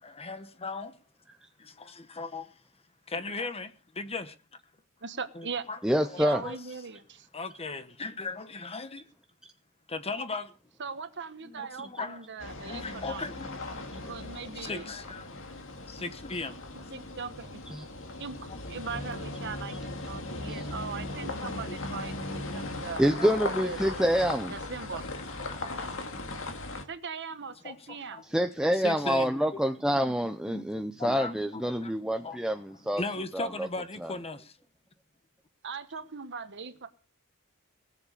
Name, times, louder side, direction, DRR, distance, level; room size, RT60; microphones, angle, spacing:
voice 1, 0.0-1.0 1.6-2.6 3.1-4.3 5.3-6.6 7.3-9.1 9.9-10.5 11.4-12.3 12.6-13.7 14.0-14.2 14.5-15.3 15.9-16.6 18.5-18.6 21.7-21.8 23.2-23.5 24.9-26.0 26.8-26.9 27.5-28.3 28.6-29.6 29.9-31.9 32.2-34.6, left 3 dB, 25° left, 1.1 m, -38 dB
voice 2, 5.0-5.6 6.2-7.2 10.8-13.2 14.0-14.8 16.9-17.6 18.2-18.4 18.7-23.2 23.6-24.0 24.5-25.0 26.9-28.2 35.6-36.9, right 5 dB, 55° right, 1.2 m, -39 dB
voice 3, 5.8-6.6 17.7-17.8 19.7-19.8 20.5-20.7 23.0-24.6 28.2-33.0 33.3-33.5 34.0-34.1, equal, 5° right, 0.6 m, -27 dB
sound 1, 12.4-26.8, left 2 dB, 60° left, 2.0 m, -38 dB
19.5 x 7.4 x 6.6 m
head